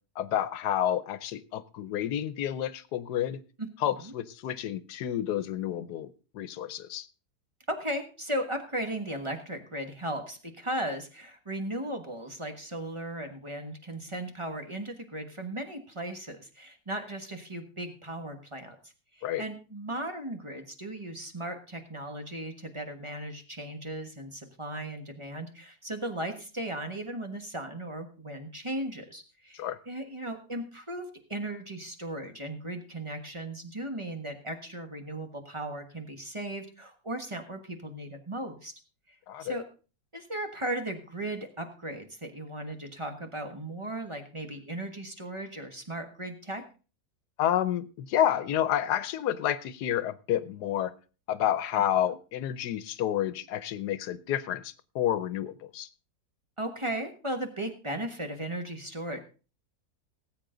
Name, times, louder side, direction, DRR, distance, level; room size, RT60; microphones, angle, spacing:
voice 1, 0.2-3.4 3.8-7.1 19.2-19.4 29.5-29.8 39.3-39.6 47.4-50.9 51.3-55.9, left 11 dB, 85° left, 16 dB, 1.3 m, -30 dB
voice 2, 7.7-31.0 31.3-38.7 39.1-39.6 40.1-46.6 51.7-51.8 56.6-59.2, right 1 dB, 20° right, 5 dB, 1.3 m, -36 dB
18.5 x 8.1 x 3.8 m, 0.35 s
omnidirectional pair, 1.7 m